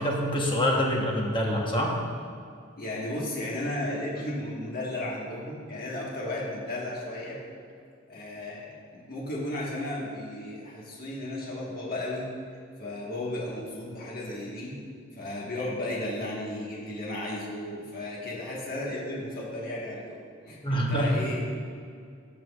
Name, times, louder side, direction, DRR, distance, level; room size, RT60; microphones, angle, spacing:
voice 1, 0.0-1.9 20.6-21.1, equal, 25° left, -1 dB, 1.0 m, -26 dB
voice 2, 2.8-7.4 8.1-12.3 12.8-14.7 15.1-20.2 20.4-21.4, left 1 dB, 50° left, -4 dB, 1.4 m, -34 dB
14.5 x 6.0 x 2.4 m, 2.3 s
head